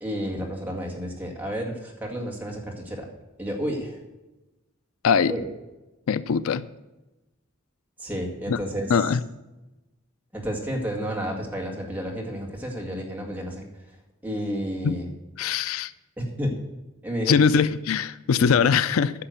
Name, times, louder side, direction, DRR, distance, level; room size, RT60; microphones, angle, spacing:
voice 1, 0.0-3.1 3.4-4.0 5.3-5.5 8.0-9.2 10.3-13.6 14.2-15.1 16.2-16.5 17.0-17.4 18.4-18.7, equal, 10° right, -1 dB, 2.0 m, -31 dB
voice 2, 6.1-6.6 8.5-8.6 8.9-9.2 14.8-15.0 15.4-15.9 17.3-19.1, left 6 dB, 85° left, 16 dB, 0.4 m, -21 dB
9.9 x 6.1 x 7.9 m, 1.0 s
head